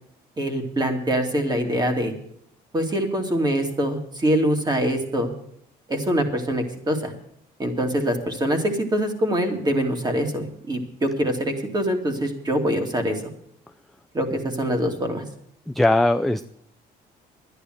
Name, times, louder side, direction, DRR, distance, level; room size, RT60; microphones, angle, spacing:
voice 1, 0.4-2.1 2.7-5.3 5.9-7.1 7.6-13.2 14.1-15.2, equal, 25° right, 4 dB, 2.6 m, -24 dB
voice 2, 15.7-16.4, left 1 dB, ahead, 8 dB, 0.4 m, -19 dB
11.5 x 10.0 x 7.9 m, 0.71 s
cardioid pair, 110°, 17 cm